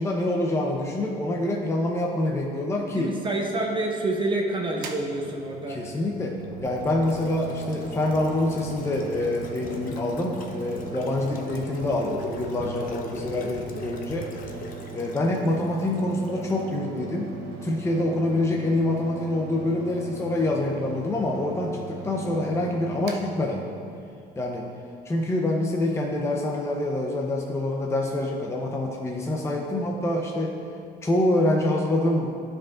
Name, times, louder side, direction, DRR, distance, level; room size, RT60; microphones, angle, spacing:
voice 1, 0.0-3.1 5.7-14.3 14.9-17.3 17.6-23.7 24.4-24.7 25.0-30.6 31.0-32.4, left 1 dB, 15° left, -1 dB, 0.6 m, -26 dB
voice 2, 2.9-6.0, right 2 dB, 30° right, -1 dB, 1.0 m, -28 dB
Mechanical fan, 4.7-24.1, right 6 dB, 75° right, 0.7 m, -40 dB
sound 1, 6.4-16.7 17.0-17.1, left 3 dB, 55° left, 0.8 m, -43 dB
12.0 x 5.1 x 2.5 m, 2.5 s
cardioid pair, 110°, 17 cm